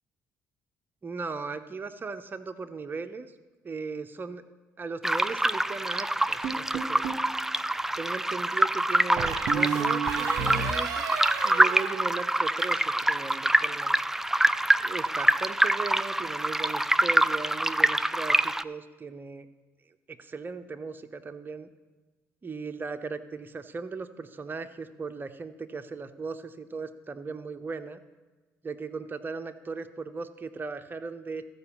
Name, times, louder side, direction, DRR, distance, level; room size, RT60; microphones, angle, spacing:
voice 1, 1.0-3.3 3.6-4.4 4.8-7.1 8.0-11.2 11.4-14.0 14.8-19.5 20.1-21.7 22.4-28.0 28.6-31.4, right 4 dB, 30° right, 8 dB, 0.8 m, -37 dB
sound 1, 5.0-18.6, right 1 dB, 5° right, 0.3 m, -25 dB
sound 2, 6.4-7.3 9.2-12.8, right 7 dB, 65° right, 0.9 m, -32 dB
13.5 x 4.9 x 7.1 m, 1.3 s
supercardioid pair, 65°, 7 cm